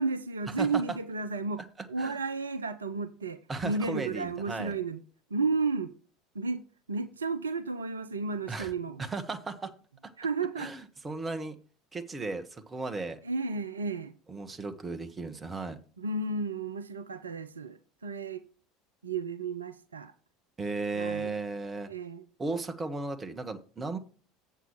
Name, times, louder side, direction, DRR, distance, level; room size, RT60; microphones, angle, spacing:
voice 1, 0.0-1.6 1.9-5.0 5.3-5.9 6.3-6.6 6.9-9.0 10.2-10.7 13.2-14.1 16.0-18.4 19.0-20.1 20.9-21.3 21.9-22.2, right 4 dB, 80° right, 0.5 m, -32 dB
voice 2, 1.6-2.2 3.5-4.8 8.5-8.7 9.0-9.7 10.6-11.6 11.9-13.2 14.3-15.8 20.6-21.9 22.4-24.0, right 3 dB, 20° right, 1.3 m, -35 dB
7.9 x 6.9 x 4.8 m
figure-of-eight pair, 70°, 0 cm